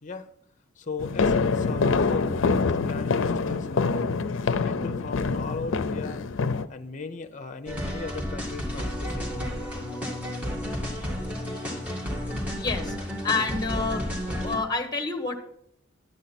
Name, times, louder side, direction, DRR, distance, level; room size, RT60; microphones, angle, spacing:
voice 1, 0.8-4.2 4.5-6.2 6.7-9.4, left 4 dB, 40° left, 9 dB, 0.8 m, -37 dB
sound 1, 1.0-6.7, left 4 dB, 90° left, 0.6 m, -25 dB
sound 2, 7.7-14.6, equal, 10° right, 2.1 m, -32 dB
voice 2, 12.6-13.0 13.2-14.0 14.4-15.4, left 4 dB, 20° left, 4 dB, 1.3 m, -28 dB
10.5 x 9.2 x 4.2 m, 0.72 s
head